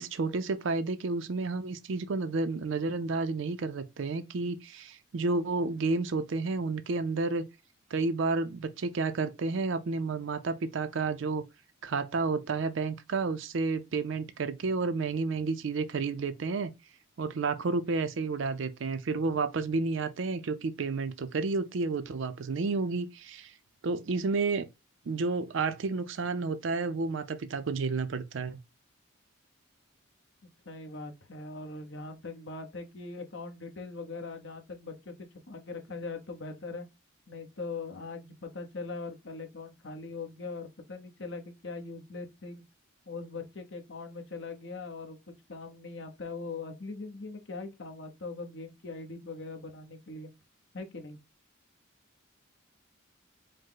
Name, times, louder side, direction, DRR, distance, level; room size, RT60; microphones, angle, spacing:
voice 1, 0.0-7.4 7.9-11.4 11.8-16.7 17.2-23.5 23.8-24.7 25.1-28.6, right 3 dB, 60° right, 0.4 m, -31 dB
voice 2, 30.6-36.9 37.3-42.6 43.1-50.3 50.7-51.2, left 3 dB, 55° left, 0.9 m, -41 dB
5.2 x 2.1 x 3.8 m
head